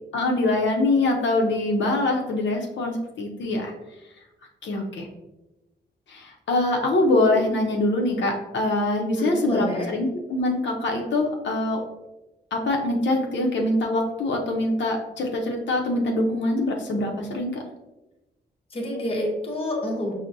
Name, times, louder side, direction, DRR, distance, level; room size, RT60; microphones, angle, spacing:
voice 1, 0.1-3.7 4.6-5.1 6.1-11.8 12.5-17.6, left 2 dB, 80° left, 0 dB, 0.6 m, -24 dB
voice 2, 9.1-9.9 18.7-20.1, left 1 dB, 30° left, -1 dB, 0.7 m, -28 dB
5.9 x 2.1 x 2.5 m, 0.98 s
wide cardioid pair, 175°, 19 cm